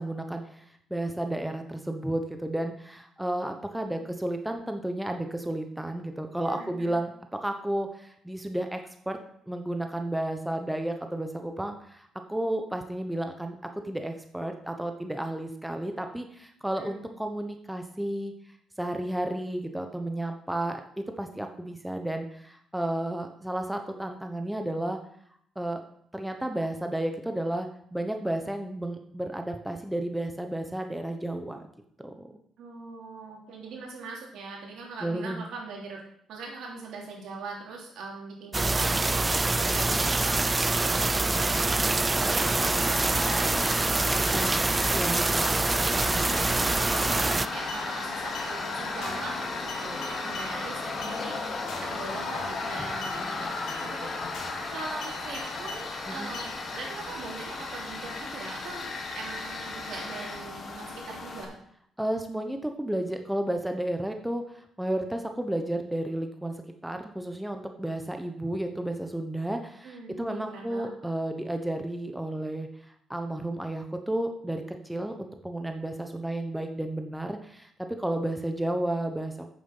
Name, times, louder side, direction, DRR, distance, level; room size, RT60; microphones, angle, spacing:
voice 1, 0.0-9.2 9.5-18.3 18.8-25.0 25.6-25.8 26.1-31.6 32.0-32.3 35.0-35.4 44.1-44.6 44.9-45.5 45.9-46.2 52.8-52.9 56.1-56.3 62.0-66.5 66.8-79.3, right 1 dB, 5° right, 5 dB, 1.0 m, -32 dB
voice 2, 6.5-7.0 16.8-17.0 32.6-36.0 36.3-43.8 44.3-44.7 45.3-45.9 46.2-51.4 51.8-53.5 53.8-54.1 54.7-61.5 69.8-70.9, right 3 dB, 75° right, -1 dB, 3.2 m, -41 dB
sound 1, 38.5-47.5, right 3 dB, 20° right, 0.4 m, -25 dB
Tools, 42.1-61.4, left 3 dB, 50° left, 2.2 m, -35 dB
sound 2, 46.4-46.7 47.0-47.3 47.7-47.8 48.3-48.5 49.0-49.3 49.7-50.5 51.0-51.2 51.7-52.0 52.3-52.7 53.0-53.2 53.7-53.8 54.3-54.7 55.0-55.8 56.3-56.5, left 3 dB, 75° left, 3.5 m, -42 dB
8.6 x 7.4 x 5.5 m, 0.69 s
cardioid pair, 90°, 0 cm